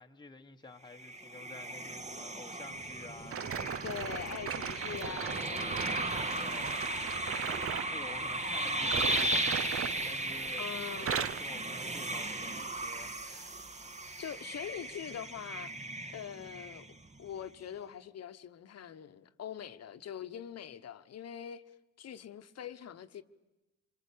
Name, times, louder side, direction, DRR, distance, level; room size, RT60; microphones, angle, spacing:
voice 1, 0.0-3.8 6.3-6.9 7.4-13.1, left 3 dB, 15° left, 1.3 m, -51 dB
sound 1, 0.9-17.2, right 1 dB, 25° right, 1.5 m, -36 dB
sound 2, 3.3-7.9 8.8-10.6 10.9-11.5 12.1-12.3 13.0-13.1, right 7 dB, 50° right, 1.0 m, -38 dB
voice 2, 3.8-5.8 6.3-6.6 10.6-11.2 13.3-13.5 14.2-15.7 16.1-16.8 17.2-21.6 22.0-23.2, left 9 dB, 55° left, 1.2 m, -43 dB
26.0 x 24.0 x 8.6 m
cardioid pair, 90°, 30 cm